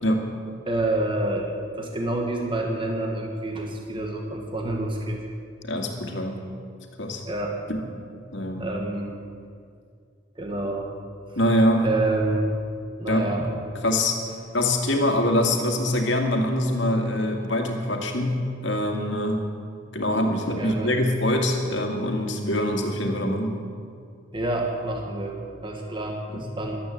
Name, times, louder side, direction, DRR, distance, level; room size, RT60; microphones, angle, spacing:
voice 1, 0.7-1.5 1.7-5.2 7.2-7.6 8.6-9.1 10.3-10.9 11.8-12.5 13.0-13.5 20.6-21.0 24.3-26.8, right 2 dB, 25° right, 1 dB, 1.6 m, -28 dB
voice 2, 5.6-6.4 7.0-7.2 7.7-7.8 8.3-8.7 11.4-11.9 13.1-13.3 13.8-14.2 14.5-19.5 19.9-23.6 26.3-26.5, left 1 dB, 65° left, 3 dB, 2.1 m, -24 dB
15.0 x 12.0 x 7.7 m, 2.3 s
head